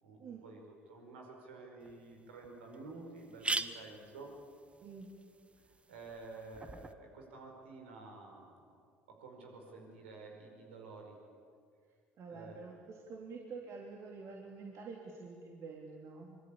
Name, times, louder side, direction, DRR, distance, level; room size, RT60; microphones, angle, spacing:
voice 1, 0.0-4.3 5.7-8.8 9.1-11.2 12.3-12.6, right 3 dB, 75° right, 2 dB, 5.2 m, -51 dB
sound 1, 1.9-2.0 2.4-2.5 2.7-2.8 3.2-6.9, right 3 dB, 20° right, 1.3 m, -42 dB
voice 2, 12.2-16.4, right 4 dB, 50° right, 0 dB, 3.2 m, -47 dB
25.5 x 24.5 x 8.6 m, 2.2 s
figure-of-eight pair, 55°, 6 cm